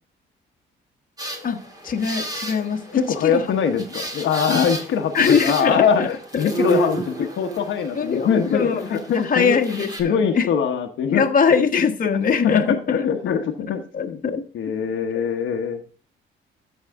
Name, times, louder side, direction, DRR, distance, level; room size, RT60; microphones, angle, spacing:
sound 1, 1.2-10.0, right 2 dB, 20° right, 2.6 m, -32 dB
voice 1, 1.4-3.5 5.1-6.5 6.8-6.9 7.9-10.5 11.1-13.4 13.9-14.5 15.1-15.2, left 6 dB, 45° left, 4 dB, 1.3 m, -22 dB
voice 2, 2.9-9.6 10.0-11.2 11.5-11.6 12.5-14.2 14.5-15.8, left 7 dB, 75° left, 4 dB, 1.1 m, -23 dB
13.5 x 4.9 x 3.5 m, 0.38 s
cardioid pair, 90°, 20 cm